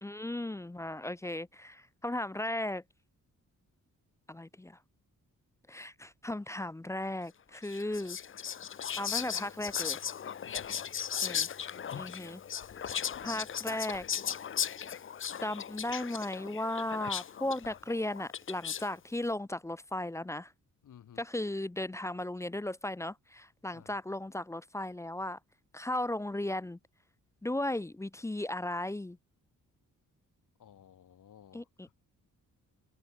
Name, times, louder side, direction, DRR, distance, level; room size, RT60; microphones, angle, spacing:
voice 1, 0.0-2.8 4.3-4.8 5.7-8.2 9.0-10.0 11.2-11.5 11.9-12.4 13.2-14.1 15.4-20.5 21.2-25.4 25.7-26.8 27.4-29.2 31.5-31.6, left 1 dB, 10° left, 0.6 m, -36 dB
Whispering, 7.6-19.0, left 8 dB, 40° left, 0.8 m, -37 dB
voice 2, 10.4-11.0 20.8-21.3 23.7-24.0 30.6-31.9, left 9 dB, 70° left, 4.6 m, -56 dB
wide cardioid pair, 165°, 33 cm